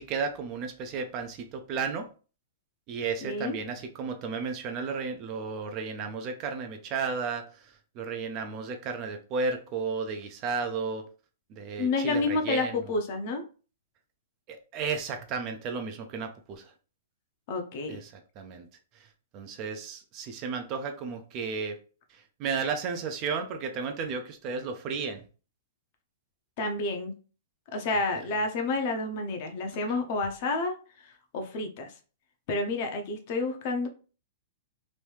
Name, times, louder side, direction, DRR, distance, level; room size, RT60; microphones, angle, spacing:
voice 1, 0.0-2.1 2.9-11.1 11.5-12.8 14.5-16.7 17.9-18.7 18.9-19.1 19.3-21.8 22.1-25.2, right 5 dB, 25° right, 6 dB, 0.4 m, -33 dB
voice 2, 3.2-3.6 11.8-13.4 17.5-18.0 26.6-27.1 27.7-30.7 31.0-31.9 32.5-33.9, left 3 dB, 35° left, 5 dB, 0.6 m, -29 dB
3.0 x 2.6 x 3.2 m, 0.36 s
hypercardioid pair, 170°, 0 cm